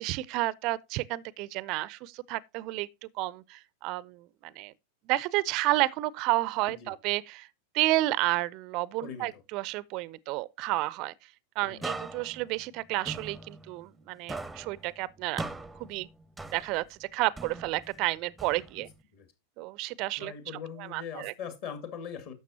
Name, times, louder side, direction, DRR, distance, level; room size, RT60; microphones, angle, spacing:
voice 1, 0.0-2.9 3.2-4.7 5.1-7.5 7.7-11.1 11.6-15.4 15.8-16.1 16.5-18.9 19.6-20.3 20.8-21.3, right 18 dB, 40° right, 0.4 m, -31 dB
voice 2, 9.0-9.4 11.6-12.0 18.8-18.9 19.1-19.3 20.2-22.3, left 7 dB, 45° left, 2.1 m, -41 dB
sound 1, 11.8-14.0 14.3-17.0 17.4-19.0, right 2 dB, 5° right, 0.6 m, -41 dB
12.0 x 7.1 x 2.8 m
figure-of-eight pair, 90°, 0 cm